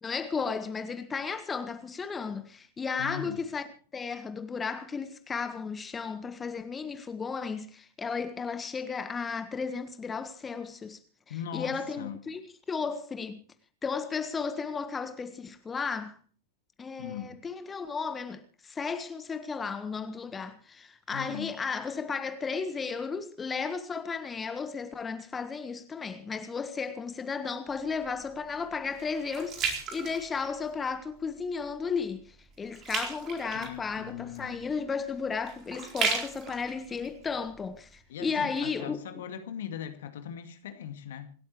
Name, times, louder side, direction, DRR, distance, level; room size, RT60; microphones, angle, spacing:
voice 1, 0.0-3.6 3.9-11.0 11.5-12.4 12.7-13.4 13.8-16.2 16.8-39.0, left 5 dB, 15° left, 1.4 m, -34 dB
voice 2, 3.0-3.4 11.3-12.3 17.0-17.4 21.1-21.6 33.5-34.7 38.1-41.3, left 9 dB, 60° left, 2.2 m, -40 dB
sound 1, 27.7-31.0 31.4-31.7 32.1-38.0 38.5-38.6, right 5 dB, 30° right, 4.2 m, -36 dB
27.0 x 13.0 x 3.2 m
figure-of-eight pair, 90°, 0 cm